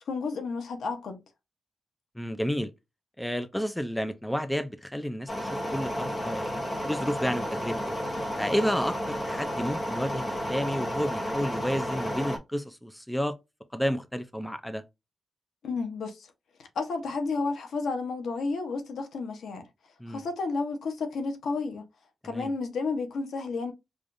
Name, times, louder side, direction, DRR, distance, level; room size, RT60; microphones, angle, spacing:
voice 1, 0.1-1.2 15.6-16.3 16.6-19.7 20.1-21.9 22.2-23.7, left 4 dB, 90° left, 0.9 m, -31 dB
voice 2, 2.2-2.7 3.2-7.8 8.4-13.3 13.7-14.8 20.0-20.2 22.2-22.5, equal, 5° left, 0.5 m, -31 dB
sound 1, 5.3-12.4, equal, 20° left, 0.9 m, -32 dB
4.9 x 2.4 x 2.5 m
wide cardioid pair, 135°, 0 cm